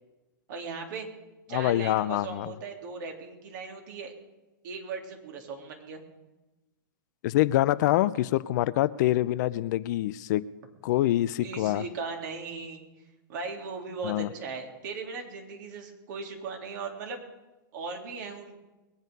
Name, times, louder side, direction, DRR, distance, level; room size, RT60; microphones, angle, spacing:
voice 1, 0.5-1.1 1.5-4.1 4.6-6.0 11.4-12.8 13.3-17.2 17.7-18.5, right 4 dB, 60° right, 2 dB, 3.4 m, -38 dB
voice 2, 1.5-2.5 7.2-10.4 10.8-11.8 14.0-14.3, left 15 dB, 55° left, 16 dB, 0.6 m, -25 dB
21.5 x 9.0 x 5.4 m, 1.1 s
hypercardioid pair, 120°, 11 cm